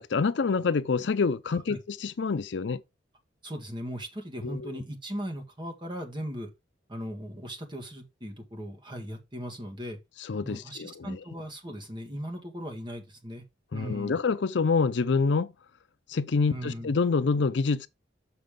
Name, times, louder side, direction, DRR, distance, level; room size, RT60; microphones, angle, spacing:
voice 1, 0.0-2.8 4.4-4.8 10.3-11.2 13.7-15.5 16.1-17.9, left 4 dB, 65° left, 0.5 m, -27 dB
voice 2, 3.4-6.5 6.9-10.0 10.4-13.4 13.7-14.2 16.4-16.9, equal, 25° right, 1.7 m, -38 dB
6.8 x 6.7 x 3.7 m
head